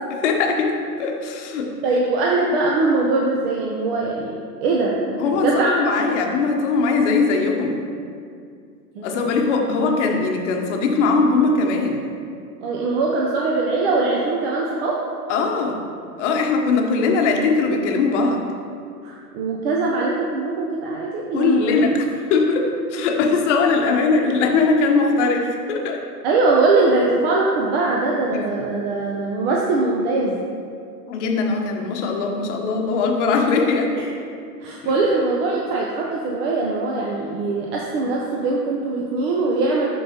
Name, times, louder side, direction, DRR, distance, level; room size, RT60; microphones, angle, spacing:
voice 1, 0.1-1.7 5.2-7.8 9.0-12.0 15.3-15.8 16.2-18.4 21.3-26.0 28.3-28.4 31.1-34.0, left 4 dB, 45° left, 3 dB, 0.9 m, -20 dB
voice 2, 1.8-4.3 4.6-5.7 9.0-9.5 12.6-15.1 19.0-21.8 26.2-30.4 34.0-34.1 34.6-39.8, right 3 dB, 40° right, -2 dB, 0.7 m, -22 dB
11.5 x 3.9 x 2.9 m, 2.3 s
hypercardioid pair, 115°, 49 cm